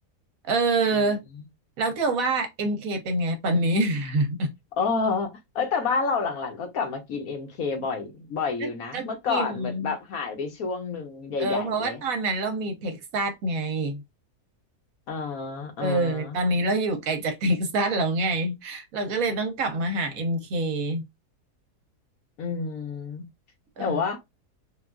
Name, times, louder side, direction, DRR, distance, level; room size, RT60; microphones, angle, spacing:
voice 1, 0.4-1.2 1.8-4.5 8.6-9.9 11.4-14.0 15.8-21.1 23.8-24.0, right 2 dB, 65° right, 1.1 m, -26 dB
voice 2, 4.8-12.0 15.1-16.4 22.4-23.2 23.8-24.2, left 5 dB, 65° left, 1.2 m, -29 dB
3.7 x 2.4 x 2.3 m
omnidirectional pair, 1.7 m